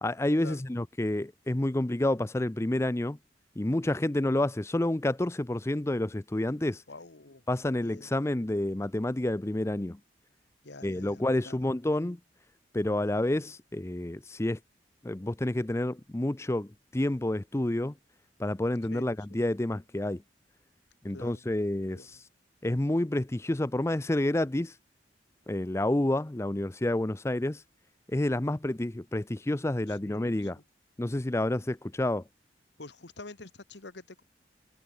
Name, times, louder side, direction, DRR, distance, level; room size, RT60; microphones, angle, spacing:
voice 1, 0.0-3.2 3.6-6.8 7.5-10.0 10.8-12.2 12.7-14.6 15.0-17.9 18.4-20.2 21.0-22.1 22.6-24.7 25.5-27.6 28.1-30.6 31.0-32.2, left 1 dB, 15° left, 0.5 m, -29 dB
voice 2, 6.9-7.4 7.8-8.1 10.6-11.7 18.8-19.4 21.1-21.4 21.8-22.1 29.9-30.6 32.8-34.2, left 2 dB, 80° left, 1.9 m, -48 dB
head